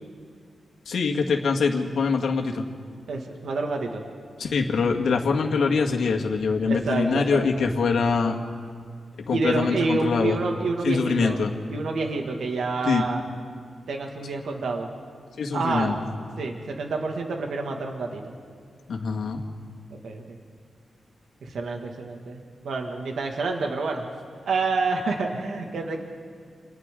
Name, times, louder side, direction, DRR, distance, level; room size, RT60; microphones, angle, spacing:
voice 1, 0.9-2.6 4.4-8.4 9.3-10.4 10.8-11.5 12.9-13.0 15.4-15.9 18.9-19.4, left 5 dB, 85° left, 1 dB, 2.0 m, -24 dB
voice 2, 3.1-4.0 6.7-7.7 9.3-11.4 11.7-13.2 13.9-14.9 15.5-15.9 16.4-18.2 20.0-20.4 21.4-24.0 24.5-26.0, right 3 dB, 80° right, 2 dB, 2.1 m, -28 dB
29.5 x 28.0 x 3.9 m, 2.1 s
wide cardioid pair, 130°, 0 cm